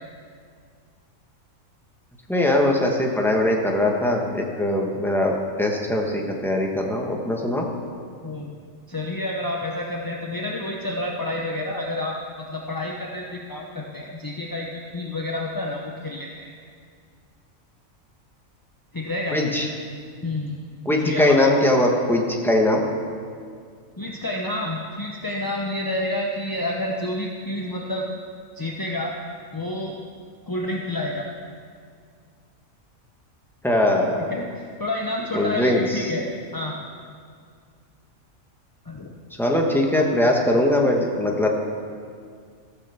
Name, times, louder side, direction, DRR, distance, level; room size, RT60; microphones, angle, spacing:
voice 1, 2.3-7.7 19.3-19.7 20.8-22.8 33.6-34.2 35.3-36.1 39.4-41.5, left 1 dB, ahead, 0 dB, 1.2 m, -21 dB
voice 2, 8.9-16.5 18.9-19.5 20.2-20.6 20.9-21.4 24.0-28.1 28.5-29.1 29.5-30.0 30.5-31.3 34.3-36.3 36.5-36.8 38.8-39.1, left 1 dB, 20° left, -1 dB, 0.6 m, -29 dB
14.5 x 6.5 x 7.0 m, 2.1 s
omnidirectional pair, 1.4 m